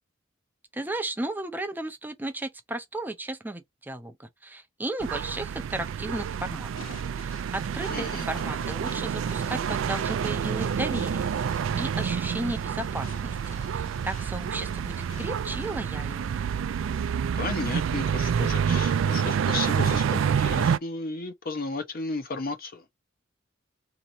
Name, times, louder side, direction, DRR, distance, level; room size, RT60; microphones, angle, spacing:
voice 1, 0.7-6.7 7.2-11.5 11.8-13.4 13.7-16.5, right 2 dB, 10° right, 0.5 m, -34 dB
sound 1, 5.0-20.8, right 7 dB, 70° right, 0.3 m, -28 dB
sound 2, 6.8-15.9, left 2 dB, 90° left, 0.9 m, -49 dB
voice 2, 7.9-8.2 17.4-22.8, left 3 dB, 45° left, 0.8 m, -34 dB
3.8 x 3.0 x 4.2 m
head